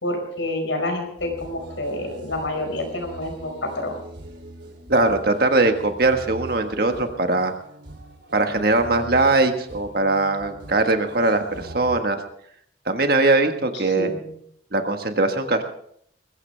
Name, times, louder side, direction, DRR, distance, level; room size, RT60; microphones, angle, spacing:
voice 1, 0.0-4.0 14.0-14.3, left 1 dB, 85° left, 3 dB, 5.1 m, -28 dB
sound 1, 1.2-12.0, right 1 dB, 70° right, 3.1 m, -42 dB
voice 2, 4.9-7.5 8.3-12.2 12.8-14.1 14.7-15.6, right 2 dB, 50° right, 6 dB, 1.5 m, -21 dB
21.0 x 15.5 x 3.4 m, 0.68 s
head